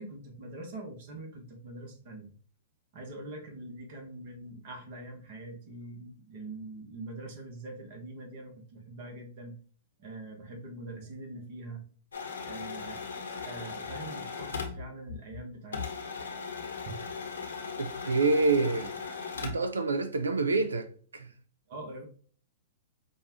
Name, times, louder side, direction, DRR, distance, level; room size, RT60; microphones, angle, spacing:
voice 1, 0.0-2.3 2.9-9.6 10.0-11.8 12.4-13.1 13.4-15.9 16.9-17.1 21.7-22.0, right 2 dB, 50° right, 1.2 m, -43 dB
sound 1, 12.1-15.4 15.7-19.7, left 5 dB, 75° left, 1.0 m, -38 dB
voice 2, 17.8-18.9 19.4-21.3, right 3 dB, 80° right, 0.4 m, -27 dB
5.2 x 2.4 x 3.0 m
figure-of-eight pair, 110°, 0 cm